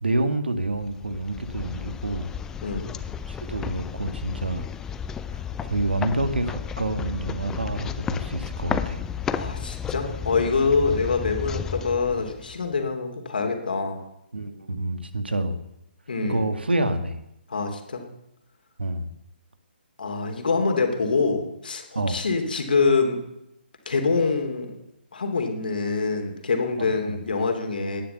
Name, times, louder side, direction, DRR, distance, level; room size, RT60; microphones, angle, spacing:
voice 1, 0.0-2.3 3.3-4.7 5.6-9.0 10.9-11.0 14.3-15.6 16.2-17.2 18.8-19.1 21.9-22.3 26.8-27.2, right 2 dB, 70° right, 10 dB, 2.0 m, -28 dB
sound 1, 0.7-12.8, left 7 dB, 10° left, 0.5 m, -33 dB
voice 2, 2.6-2.9 9.3-14.0 16.1-16.5 17.5-18.0 20.0-23.2 23.8-24.7 25.1-28.0, left 4 dB, 55° left, 4 dB, 3.1 m, -25 dB
17.5 x 11.0 x 6.9 m, 0.85 s
figure-of-eight pair, 135°, 6 cm